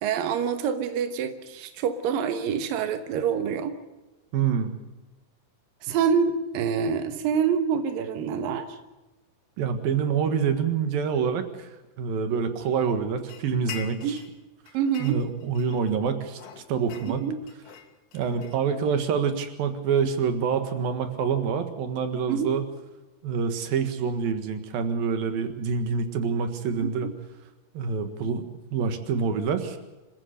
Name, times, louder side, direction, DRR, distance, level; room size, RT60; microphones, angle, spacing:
voice 1, 0.0-3.8 5.8-8.8 14.0-14.2 14.7-15.2 17.1-17.4 22.3-22.5 26.8-27.1, right 7 dB, 80° right, 8 dB, 2.0 m, -26 dB
voice 2, 4.3-4.7 9.6-11.7 12.0-14.2 15.0-16.4 16.7-17.3 18.1-22.7 23.2-27.1 27.7-29.8, right 6 dB, 60° right, 8 dB, 2.8 m, -26 dB
sound 1, 13.3-14.4 14.7-16.0 16.3-19.0, left 9 dB, 85° left, 4.7 m, -44 dB
26.5 x 16.0 x 6.7 m, 1.1 s
omnidirectional pair, 5.8 m